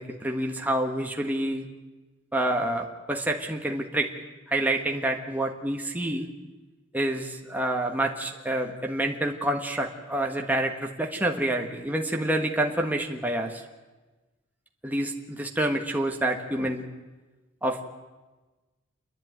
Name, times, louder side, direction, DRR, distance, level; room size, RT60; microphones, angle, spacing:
voice 1, 0.0-1.6 2.3-4.1 4.5-6.3 6.9-13.6 14.8-16.8 17.6-17.8, right 1 dB, 10° right, 2 dB, 1.5 m, -28 dB
29.0 x 10.5 x 9.3 m, 1.2 s
head